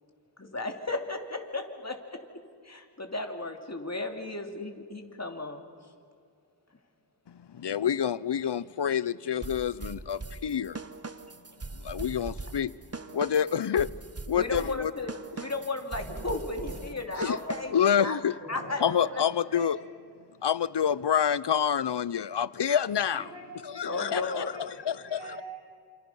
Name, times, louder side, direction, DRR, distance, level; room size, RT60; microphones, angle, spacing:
voice 1, 0.4-2.2 2.6-5.6 14.3-15.1 15.4-17.7 18.0-18.2 18.5-18.8 19.1-19.2 23.8-24.5, left 2 dB, 40° left, 2.7 m, -34 dB
voice 2, 7.3-10.8 11.8-12.7 13.1-13.9 14.3-14.9 17.2-17.4 17.7-18.3 18.8-19.8 20.4-23.2 23.8-25.2, left 8 dB, 75° left, 0.6 m, -27 dB
sound 1, 9.4-17.9, right 3 dB, 35° right, 1.0 m, -41 dB
voice 3, 16.0-16.8 18.4-19.2 19.5-19.7 23.1-25.4, right 1 dB, 85° right, 5.5 m, -45 dB
28.0 x 27.5 x 5.5 m
wide cardioid pair, 55°, 42 cm